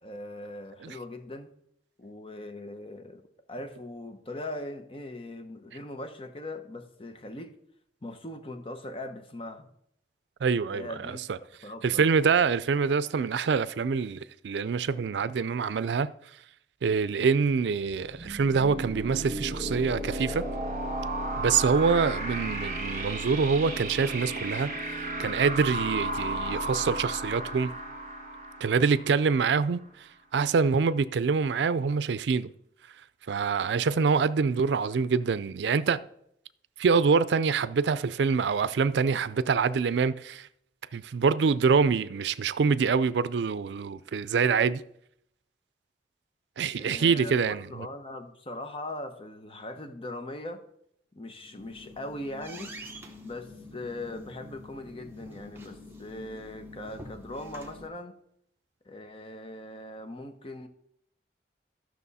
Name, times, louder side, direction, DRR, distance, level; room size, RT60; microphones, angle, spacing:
voice 1, 0.0-1.5 2.0-3.2 3.5-7.5 8.0-9.7 10.7-11.2 11.6-12.1 46.8-50.6 51.1-52.7 53.2-58.2 58.8-60.7, left 1 dB, 30° left, 0.9 m, -40 dB
voice 2, 10.4-11.4 11.8-16.1 16.8-20.4 21.4-27.7 28.6-32.5 33.3-36.0 36.8-40.5 40.9-44.8 46.6-47.9, right 5 dB, 85° right, 0.4 m, -25 dB
sound 1, 18.0-29.6, right 1 dB, 45° right, 1.7 m, -34 dB
sound 2, 51.4-57.9, left 1 dB, 15° right, 1.0 m, -46 dB
13.5 x 6.1 x 4.1 m
head